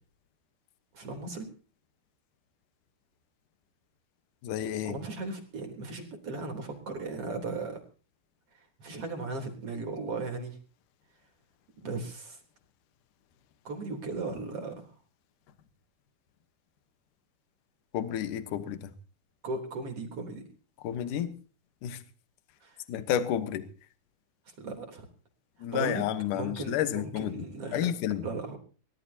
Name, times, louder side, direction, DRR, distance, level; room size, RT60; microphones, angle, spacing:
voice 1, 0.9-1.5 4.8-7.8 8.8-10.6 11.8-12.4 13.6-14.8 19.4-20.4 22.6-22.8 24.6-25.0 25.7-26.0 26.3-27.9 28.2-28.6, right 3 dB, 35° right, 3.9 m, -36 dB
voice 2, 4.4-5.0 17.9-18.9 20.8-21.3 21.8-22.0 22.9-23.7 25.6-27.4 27.7-28.3, left 10 dB, 85° left, 1.8 m, -31 dB
23.0 x 18.5 x 2.9 m
omnidirectional pair, 5.6 m